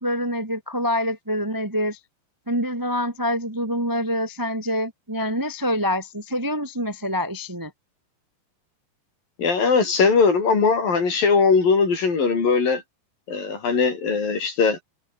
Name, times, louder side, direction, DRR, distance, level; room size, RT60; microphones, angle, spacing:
voice 1, 0.0-2.0 2.5-7.7, equal, 10° right, 1.3 m, -26 dB
voice 2, 9.4-12.8 13.3-14.8, left 5 dB, 55° left, 7.1 m, -20 dB
omnidirectional pair, 4.8 m